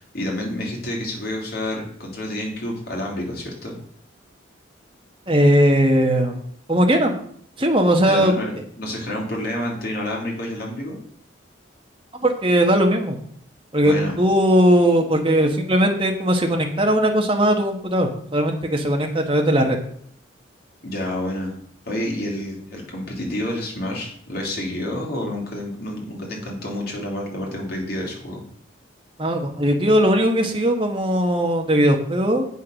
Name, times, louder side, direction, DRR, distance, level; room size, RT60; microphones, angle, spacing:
voice 1, 0.0-3.8 8.0-11.0 13.8-14.2 20.8-21.6 21.9-28.4, left 1 dB, 50° left, -2 dB, 2.8 m, -29 dB
voice 2, 5.3-6.4 6.7-7.1 7.6-8.3 12.1-13.2 13.7-19.8 29.2-32.5, equal, 25° right, 3 dB, 1.3 m, -19 dB
8.2 x 5.7 x 6.2 m, 0.63 s
head